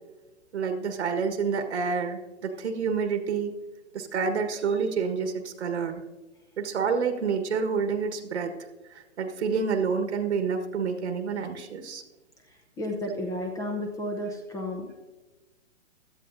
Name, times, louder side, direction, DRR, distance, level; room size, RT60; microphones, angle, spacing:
voice 1, 0.5-3.5 3.9-6.0 6.6-8.5 9.2-12.0, right 5 dB, 60° right, 7 dB, 1.5 m, -28 dB
voice 2, 12.8-15.1, left 1 dB, 10° left, 3 dB, 0.8 m, -32 dB
16.5 x 12.0 x 2.6 m, 1.2 s
hypercardioid pair, 135°, 38 cm